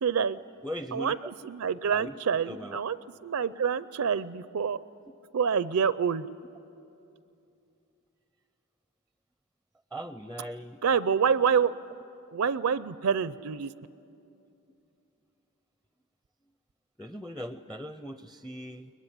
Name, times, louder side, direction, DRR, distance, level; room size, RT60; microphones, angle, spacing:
voice 1, 0.0-0.4 0.9-3.0 3.2-4.8 5.3-6.3 10.8-11.8 12.3-13.7, right 6 dB, 70° right, 16 dB, 0.5 m, -27 dB
voice 2, 0.6-1.3 1.9-2.1 2.5-2.8 9.9-10.8 17.0-18.9, equal, ahead, 10 dB, 0.5 m, -39 dB
22.5 x 21.0 x 10.0 m, 2.7 s
head